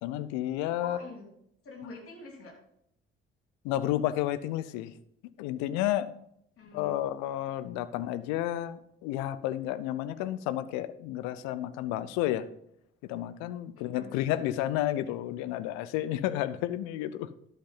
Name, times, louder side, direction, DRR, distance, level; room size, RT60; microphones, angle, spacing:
voice 1, 0.0-1.0 3.6-4.9 5.4-6.1 6.7-12.5 13.1-17.3, left 13 dB, 65° left, 15 dB, 0.7 m, -31 dB
voice 2, 0.8-1.3 1.6-2.5 6.6-7.1 13.7-14.2, left 3 dB, 50° left, 0 dB, 3.4 m, -45 dB
11.5 x 8.0 x 3.8 m, 0.73 s
figure-of-eight pair, 45°, 29 cm